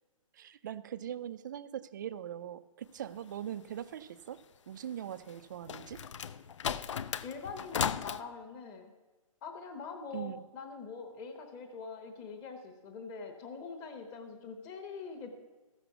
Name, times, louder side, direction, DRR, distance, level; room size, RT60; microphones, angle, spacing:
voice 1, 0.3-6.1 10.1-10.4, right 10 dB, 35° right, 14 dB, 0.3 m, -41 dB
sound 1, 5.3-8.2, left 8 dB, 60° left, 0.5 m, -35 dB
voice 2, 7.2-8.9 9.4-15.3, left 5 dB, 15° left, 5 dB, 1.0 m, -44 dB
13.5 x 6.1 x 6.9 m, 1.2 s
hypercardioid pair, 160°, 18 cm